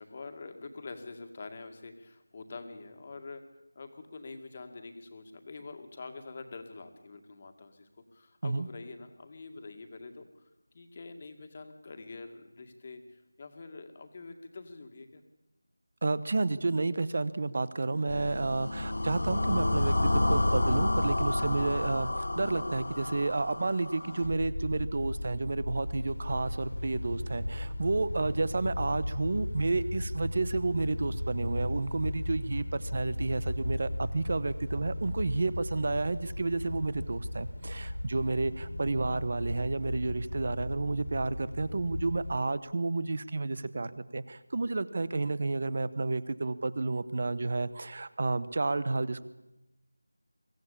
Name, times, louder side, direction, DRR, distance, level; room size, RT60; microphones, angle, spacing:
voice 1, 0.0-3.4 3.8-10.5 10.7-15.2, left 3 dB, 30° left, 6 dB, 2.2 m, -46 dB
voice 2, 16.0-49.2, right 3 dB, 40° right, 16 dB, 1.1 m, -31 dB
sound 1, 18.1-24.3, left 1 dB, 70° left, 0.9 m, -29 dB
sound 2, 24.2-42.4, left 1 dB, 85° left, 4.9 m, -36 dB
24.0 x 15.5 x 8.6 m, 0.99 s
figure-of-eight pair, 175°, 0 cm